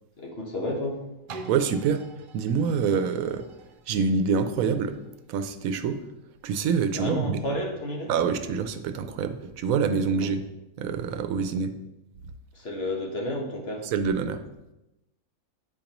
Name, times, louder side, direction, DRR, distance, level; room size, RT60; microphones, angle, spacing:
voice 1, 0.2-1.0 6.9-8.1 10.1-10.3 12.5-13.9, left 1 dB, 50° left, -1 dB, 1.3 m, -31 dB
sound 1, 1.3-7.0 7.6-7.7, right 3 dB, 60° right, 0.5 m, -47 dB
voice 2, 1.5-2.0 2.3-3.5 3.9-5.0 5.3-6.0 6.4-7.4 8.1-10.4 10.8-11.7 13.8-14.4, right 6 dB, 85° right, 9 dB, 1.0 m, -26 dB
8.3 x 5.1 x 3.0 m, 0.95 s
omnidirectional pair, 1.4 m